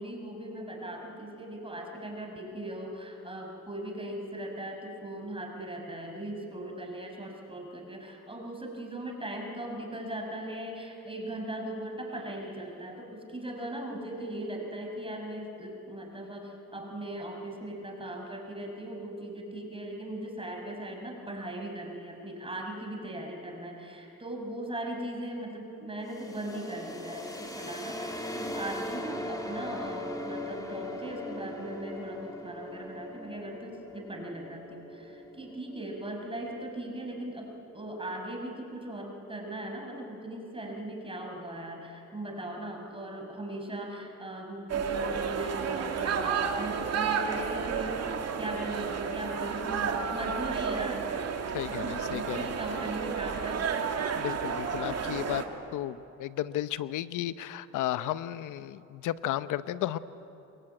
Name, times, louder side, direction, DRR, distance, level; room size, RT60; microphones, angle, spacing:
voice 1, 0.0-48.0 48.4-51.1 51.7-54.1 54.9-55.1, right 1 dB, 20° right, 2 dB, 5.5 m, -39 dB
sound 1, 26.0-37.7, left 1 dB, 10° left, 2.9 m, -40 dB
sound 2, 44.7-55.5, right 6 dB, 55° right, 2.4 m, -31 dB
voice 2, 51.5-52.4 54.2-55.4 55.7-60.0, left 13 dB, 85° left, 14 dB, 0.9 m, -33 dB
27.5 x 22.5 x 9.1 m, 2.9 s
cardioid pair, 90°, 30 cm